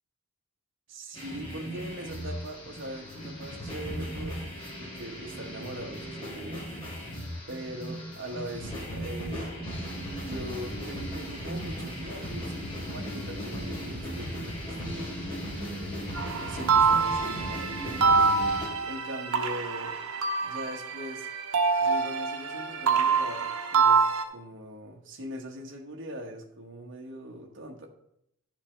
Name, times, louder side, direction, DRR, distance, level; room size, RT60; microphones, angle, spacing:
voice 1, 0.9-4.4 4.8-6.7 7.5-9.5 10.1-16.1 16.3-18.4 18.8-20.0 20.4-21.3 21.8-24.0 24.3-27.9, equal, 55° right, 2 dB, 1.3 m, -41 dB
sound 1, 1.1-18.7, equal, 25° left, 3.5 m, -37 dB
sound 2, 16.1-24.2, right 5 dB, 80° right, 0.9 m, -26 dB
11.5 x 7.0 x 3.3 m, 0.78 s
head